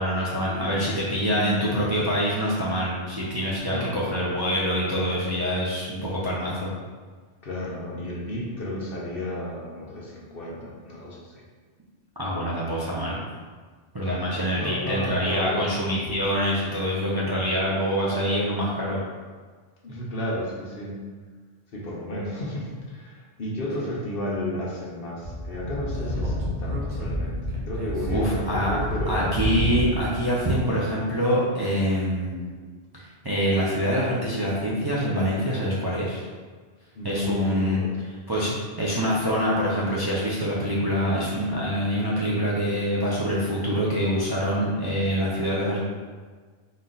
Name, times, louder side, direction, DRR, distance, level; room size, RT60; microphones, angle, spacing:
voice 1, 0.0-6.7 12.2-13.2 13.9-19.0 28.1-28.8 29.1-32.6 32.9-36.3 37.0-37.8 38.3-45.8, equal, 30° right, -7 dB, 0.5 m, -25 dB
voice 2, 0.5-0.9 1.2-1.6 3.6-4.0 7.4-11.3 14.0-15.7 19.8-21.0 21.7-27.4 27.7-29.3 36.9-37.9, left 1 dB, 60° left, -4 dB, 1.0 m, -33 dB
Speech / Wind, 25.2-30.1, left 1 dB, 85° right, 1.2 m, -29 dB
4.2 x 2.5 x 3.9 m, 1.5 s
omnidirectional pair, 1.1 m